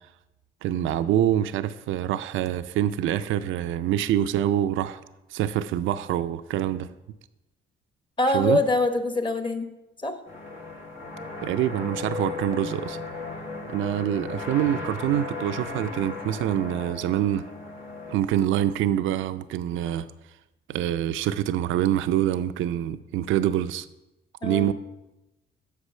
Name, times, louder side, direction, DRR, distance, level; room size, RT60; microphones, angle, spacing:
voice 1, 0.6-5.0 5.3-6.9 8.3-8.6 11.4-13.0 13.7-17.4 18.1-20.1 20.7-23.9 24.4-24.7, right 11 dB, 80° right, 12 dB, 0.4 m, -25 dB
voice 2, 8.2-9.7 10.0-10.2 24.4-24.7, left 2 dB, 25° left, 7 dB, 1.0 m, -24 dB
sound 1, 10.3-18.2, left 3 dB, 70° left, 1.7 m, -36 dB
8.2 x 6.1 x 5.4 m, 0.97 s
cardioid pair, 90°, 20 cm